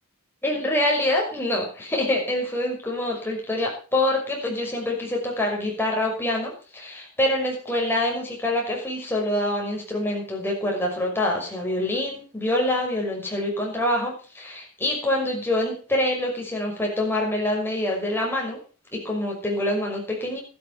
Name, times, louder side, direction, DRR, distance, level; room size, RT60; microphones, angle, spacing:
voice 1, 0.4-18.6 18.9-20.4, left 1 dB, 10° left, -1 dB, 5.7 m, -25 dB
13.0 x 12.0 x 5.6 m, 0.37 s
head